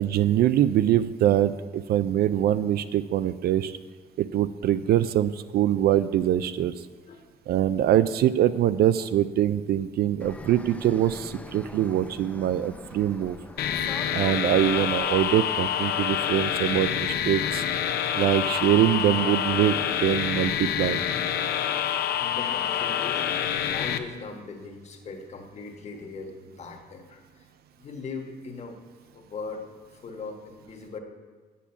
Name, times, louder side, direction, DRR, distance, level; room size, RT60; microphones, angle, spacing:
voice 1, 0.0-3.8 4.2-6.9 7.5-13.4 14.1-17.6 18.1-19.8 20.0-21.0, right 11 dB, 70° right, 13 dB, 0.4 m, -23 dB
Fixed-wing aircraft airplane, 10.2-15.4, left 2 dB, 10° left, 0.5 m, -43 dB
sound 1, 13.6-24.0, left 9 dB, 70° left, 0.6 m, -27 dB
voice 2, 21.8-23.2 23.7-27.5 27.8-28.8 29.1-31.0, left 4 dB, 40° left, 3 dB, 1.4 m, -40 dB
8.5 x 8.4 x 7.1 m, 1.5 s
cardioid pair, 155°, 17 cm